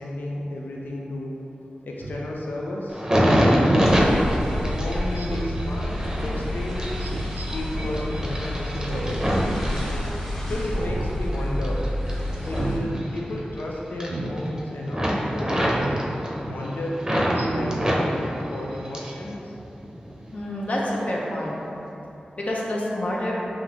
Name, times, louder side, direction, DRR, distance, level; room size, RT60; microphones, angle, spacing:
voice 1, 0.0-1.3 1.8-3.0 3.7-6.9 7.5-9.5 10.5-11.9 12.4-16.0 16.5-19.5, left 1 dB, 80° left, -2 dB, 0.4 m, -33 dB
Speech synthesizer, 2.0-2.2 3.7-3.9 5.2-5.6 7.0-7.5 8.8-9.3 9.7-9.8 10.6-11.1 11.5-11.8 12.4-12.8 14.1-14.3 15.7-16.0 16.5-16.6 17.3-17.8 18.3-18.4, right 3 dB, 85° right, 0.3 m, -33 dB
sound 1, 2.9-10.5 11.0-13.6 13.9-14.6 14.9-17.4 17.7-19.3 19.6-20.3 20.8-21.0, equal, 20° right, 0.7 m, -25 dB
sound 2, 3.8-12.8, left 1 dB, 15° left, 1.4 m, -29 dB
voice 2, 20.3-21.5 22.4-23.3, left 1 dB, 50° left, -4 dB, 0.8 m, -27 dB
5.8 x 2.5 x 3.0 m, 2.9 s
cardioid pair, 50°, 3 cm